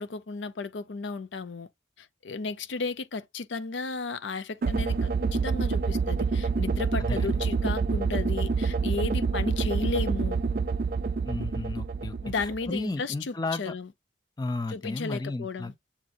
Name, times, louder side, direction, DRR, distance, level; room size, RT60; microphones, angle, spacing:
voice 1, 0.0-1.7 2.0-10.4 12.2-13.9 14.7-15.7, left 4 dB, 75° left, 0.6 m, -34 dB
sound 1, 4.6-12.8, right 4 dB, 50° right, 0.3 m, -27 dB
voice 2, 7.0-7.4 11.3-12.1 12.4-13.7 14.4-15.7, left 2 dB, 20° left, 0.4 m, -33 dB
7.2 x 2.6 x 2.4 m
head